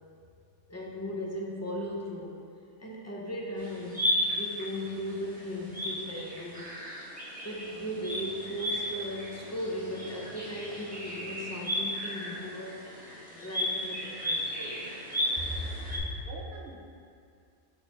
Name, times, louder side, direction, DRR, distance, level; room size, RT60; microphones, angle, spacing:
voice 1, 0.7-2.4 2.8-6.8 7.4-12.8 13.3-14.8 15.4-16.1, equal, 20° left, -4 dB, 0.5 m, -37 dB
sound 1, 3.6-16.0, equal, 5° right, 1.1 m, -35 dB
voice 2, 15.7-16.8, right 3 dB, 65° right, -2 dB, 1.0 m, -47 dB
7.0 x 3.1 x 4.4 m, 2.4 s
omnidirectional pair, 1.2 m